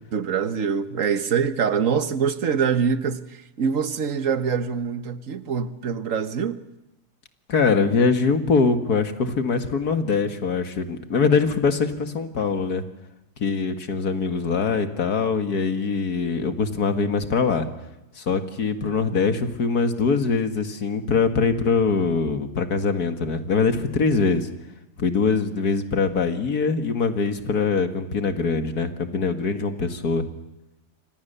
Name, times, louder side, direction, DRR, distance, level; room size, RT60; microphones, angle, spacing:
voice 1, 0.1-6.6, right 6 dB, 60° right, 1.7 m, -24 dB
voice 2, 7.5-12.8 13.4-17.7 18.2-24.5 25.0-30.3, left 4 dB, 85° left, 2.4 m, -23 dB
29.0 x 25.0 x 6.9 m
omnidirectional pair, 1.6 m